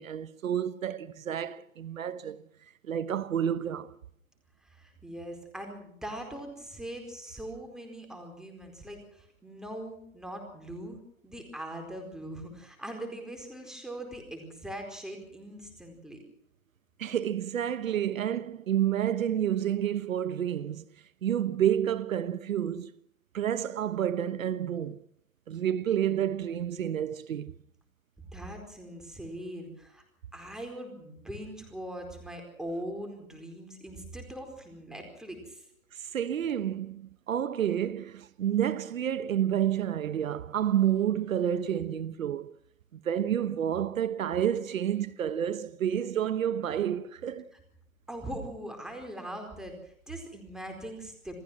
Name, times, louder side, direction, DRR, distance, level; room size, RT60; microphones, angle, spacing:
voice 1, 0.0-2.4 2.8-3.9 17.0-20.8 21.2-22.9 23.3-25.0 25.5-27.5 35.9-42.6 43.0-47.5, right 10 dB, 70° right, 1.2 m, -29 dB
voice 2, 4.6-16.2 28.3-30.0 30.3-35.7 48.1-51.4, right 1 dB, ahead, 4.4 m, -41 dB
28.0 x 17.0 x 6.2 m
hypercardioid pair, 150°, 42 cm